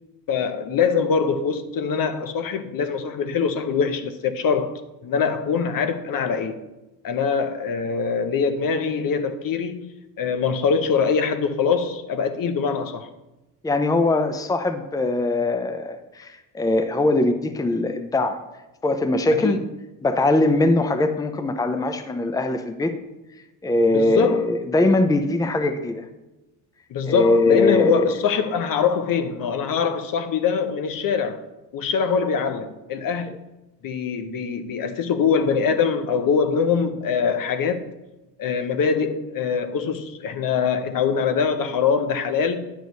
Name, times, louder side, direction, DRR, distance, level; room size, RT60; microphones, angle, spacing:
voice 1, 0.3-6.6 7.0-13.1 19.4-19.6 23.9-24.4 26.9-31.5 31.7-33.3 33.8-37.9 38.4-42.7, left 6 dB, 50° left, 0.8 m, -23 dB
voice 2, 13.6-18.4 18.8-19.6 20.0-23.0 23.6-26.0 27.0-28.1, left 2 dB, 10° left, 0.7 m, -21 dB
9.2 x 6.5 x 4.0 m
hypercardioid pair, 65°, 44 cm